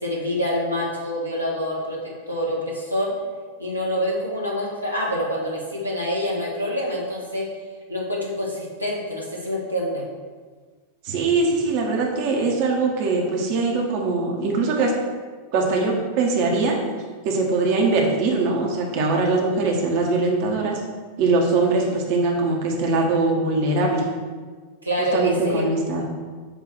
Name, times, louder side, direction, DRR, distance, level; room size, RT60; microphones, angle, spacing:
voice 1, 0.0-3.1 3.6-7.5 7.9-10.0 24.8-25.7, equal, 85° right, -4 dB, 1.7 m, -26 dB
voice 2, 11.0-14.9 15.5-16.8 17.2-20.8 21.2-24.0 25.1-26.0, right 3 dB, 45° right, -1 dB, 1.4 m, -22 dB
7.8 x 3.0 x 6.2 m, 1.5 s
figure-of-eight pair, 90°, 0 cm